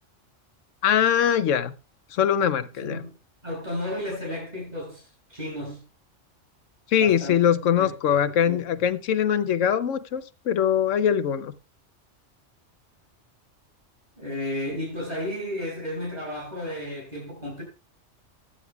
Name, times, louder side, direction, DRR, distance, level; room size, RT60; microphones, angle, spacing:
voice 1, 0.8-1.7 2.1-3.0 6.9-11.5, left 9 dB, 85° left, 1.1 m, -22 dB
voice 2, 2.8-3.1 3.4-5.8 6.9-8.6 14.2-17.6, left 1 dB, 35° right, 7.4 m, -33 dB
16.0 x 11.0 x 2.3 m
omnidirectional pair, 1.2 m